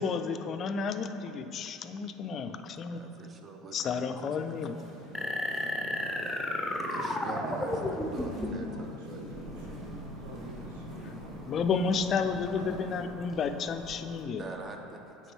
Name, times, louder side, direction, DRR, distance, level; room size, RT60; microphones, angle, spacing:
voice 1, 0.0-3.0 3.7-4.8 11.5-14.4, left 5 dB, 45° left, 8 dB, 0.3 m, -31 dB
voice 2, 2.9-4.9 6.9-9.8 14.4-15.0, right 3 dB, 35° right, 3 dB, 0.7 m, -45 dB
sound 1, 4.2-13.0, right 1 dB, 55° right, 1.4 m, -45 dB
sound 2, 5.1-8.7, left 1 dB, 5° left, 0.6 m, -32 dB
voice 3, 6.7-8.3 8.7-11.4, right 1 dB, 80° right, -1 dB, 0.8 m, -47 dB
sound 3, 9.2-14.2, left 1 dB, 15° right, 1.4 m, -48 dB
8.9 x 3.8 x 3.2 m, 2.9 s
hypercardioid pair, 75°, 0 cm